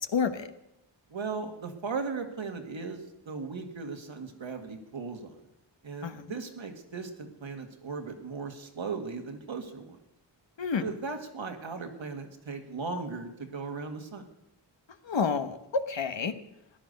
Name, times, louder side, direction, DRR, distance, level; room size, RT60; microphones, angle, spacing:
voice 1, 0.1-0.5 6.0-6.3 10.6-10.9 15.0-16.3, left 5 dB, 70° left, 9 dB, 1.1 m, -29 dB
voice 2, 1.1-5.4 5.8-10.0 10.8-14.3, right 4 dB, 75° right, 4 dB, 1.9 m, -37 dB
15.0 x 10.5 x 6.7 m, 0.88 s
wide cardioid pair, 65°, 46 cm